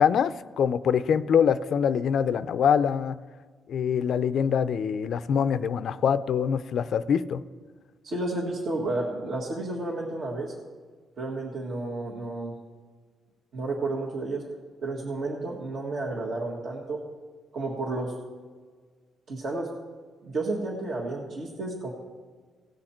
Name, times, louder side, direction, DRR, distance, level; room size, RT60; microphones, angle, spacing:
voice 1, 0.0-3.2 3.7-7.4, left 7 dB, 60° left, 14 dB, 0.4 m, -24 dB
voice 2, 8.0-10.5 11.2-12.5 13.5-14.4 14.8-17.0 17.5-18.1 19.3-19.7 20.2-21.9, right 2 dB, 55° right, -3 dB, 1.7 m, -31 dB
17.5 x 6.5 x 4.4 m, 1.5 s
cardioid pair, 115°, 0 cm